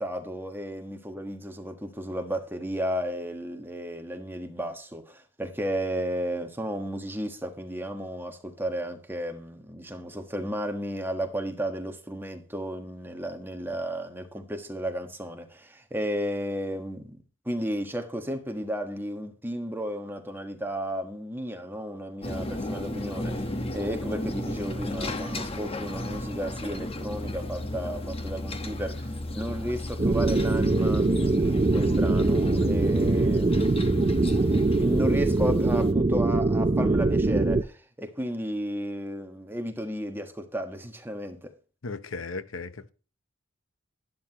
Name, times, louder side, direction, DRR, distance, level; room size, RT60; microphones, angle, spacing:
voice 1, 0.0-17.2 17.4-33.8 34.5-41.5, equal, 10° right, 1.4 m, -33 dB
sound 1, 22.2-35.9, left 1 dB, 30° left, 1.2 m, -34 dB
sound 2, 30.0-37.6, right 2 dB, 30° right, 0.5 m, -23 dB
voice 2, 41.8-42.9, left 3 dB, 75° left, 0.8 m, -36 dB
11.5 x 11.0 x 3.0 m
head